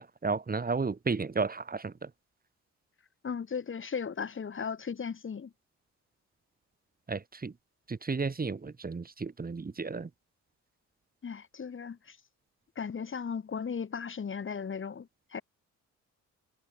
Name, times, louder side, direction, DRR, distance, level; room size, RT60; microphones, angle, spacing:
voice 1, 0.2-1.9 7.1-7.5 7.9-10.1, right 4 dB, 30° right, 6.5 m, -32 dB
voice 2, 3.2-5.5 11.2-12.2 12.8-15.4, left 6 dB, 40° left, 4.6 m, -36 dB
cardioid pair, 90°, 30 cm